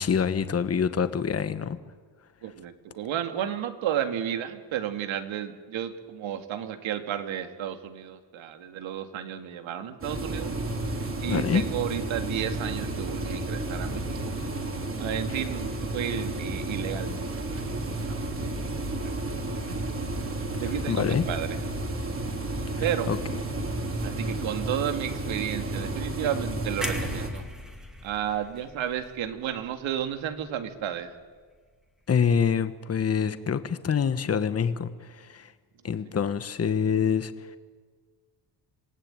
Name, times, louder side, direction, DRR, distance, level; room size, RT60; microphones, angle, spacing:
voice 1, 0.0-1.8 11.3-11.7 20.9-21.2 22.7-23.2 32.1-35.5 35.8-37.6, left 7 dB, 35° left, 11 dB, 1.2 m, -26 dB
voice 2, 2.4-10.6 11.2-14.4 15.0-18.3 18.8-19.1 19.7-19.9 20.6-21.5 22.8-23.2 24.0-27.4 28.0-31.1, right 10 dB, 90° right, 7 dB, 2.2 m, -32 dB
sound 1, 10.0-27.3, right 2 dB, 30° right, 3.2 m, -32 dB
sound 2, 26.8-30.8 31.2-31.4, equal, ahead, 2.5 m, -39 dB
27.0 x 18.5 x 9.0 m, 1.5 s
cardioid pair, 130°, 45 cm